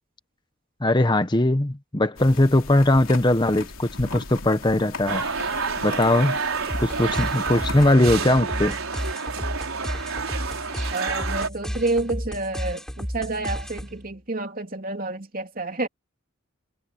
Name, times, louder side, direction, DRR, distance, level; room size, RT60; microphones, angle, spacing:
voice 1, 0.8-5.2 5.8-6.4 6.8-8.8, left 1 dB, 20° left, 0.9 m, -20 dB
sound 1, 2.2-7.9, left 3 dB, 75° left, 3.0 m, -38 dB
sound 2, 5.1-11.5, right 5 dB, 80° right, 4.4 m, -29 dB
sound 3, 6.7-14.1, equal, ahead, 5.1 m, -32 dB
voice 2, 10.9-15.9, right 2 dB, 40° right, 3.0 m, -29 dB
head